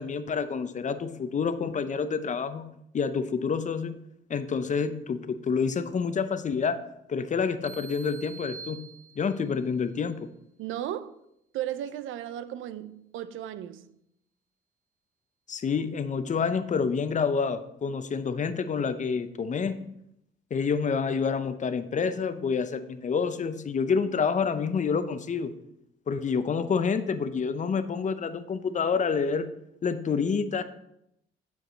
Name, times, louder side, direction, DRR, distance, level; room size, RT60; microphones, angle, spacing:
voice 1, 0.0-2.7 2.9-3.9 4.3-6.8 7.1-8.8 9.2-10.2 15.5-19.8 20.5-25.5 26.1-29.5 29.8-30.6, left 5 dB, 40° left, 0.6 m, -28 dB
sound 1, 7.6-9.6, right 5 dB, 15° right, 0.5 m, -45 dB
voice 2, 10.6-11.2 11.5-14.0, right 11 dB, 80° right, 0.5 m, -35 dB
8.9 x 4.7 x 4.0 m
cardioid pair, 90°, 20 cm